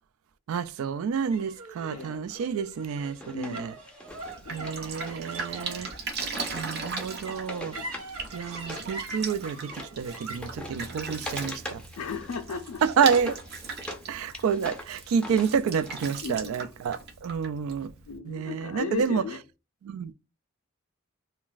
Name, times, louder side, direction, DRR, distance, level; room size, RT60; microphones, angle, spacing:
voice 1, 0.5-3.7 4.5-5.9 6.5-7.8 8.3-11.8 12.8-13.4 14.1-17.9 18.3-19.2 19.8-20.1, right 6 dB, 70° right, 0.3 m, -29 dB
sound 1, 1.3-17.9, right 2 dB, 85° right, 0.7 m, -45 dB
Wood, 2.9-8.9 9.2-14.0 14.3-16.1, left 1 dB, 5° left, 0.4 m, -43 dB
voice 2, 3.3-3.7 4.5-4.7 6.5-6.6 7.7-8.0 12.0-12.8 14.2-14.4 16.2-16.5 18.1-19.4, left 5 dB, 80° left, 0.4 m, -36 dB
Drip, 4.1-18.2, right 4 dB, 50° right, 0.7 m, -39 dB
2.4 x 2.2 x 3.8 m
head